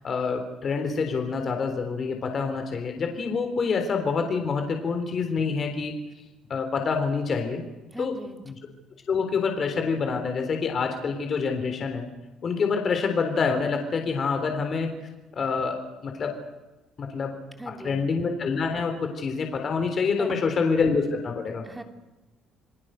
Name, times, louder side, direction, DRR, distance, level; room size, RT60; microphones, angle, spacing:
voice 1, 0.0-5.9 6.5-7.6 8.0-8.1 8.5-8.6 9.1-12.0 12.4-14.9 15.3-16.3 17.0-17.3 17.7-21.6, left 5 dB, 40° left, 5 dB, 3.6 m, -26 dB
voice 2, 7.9-8.4 17.6-18.1 20.2-20.6 21.6-21.8, right 1 dB, 10° right, 6 dB, 2.8 m, -39 dB
28.0 x 19.0 x 6.5 m, 1.1 s
cardioid pair, 125°, 0 cm